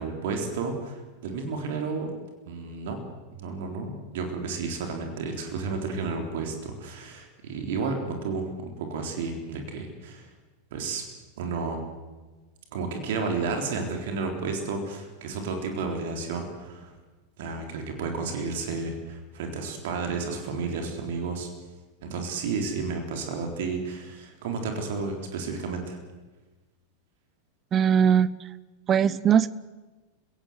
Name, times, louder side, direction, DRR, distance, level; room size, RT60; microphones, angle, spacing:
voice 1, 0.0-2.1 2.5-3.0 3.3-10.3 10.7-11.0 11.4-11.8 12.7-16.9 17.4-21.5 22.0-26.0, right 4 dB, 55° right, 4 dB, 3.8 m, -32 dB
voice 2, 27.7-28.3 28.9-29.5, right 8 dB, 25° right, 18 dB, 0.9 m, -20 dB
30.0 x 17.0 x 8.0 m, 1.2 s
figure-of-eight pair, 90°, 0 cm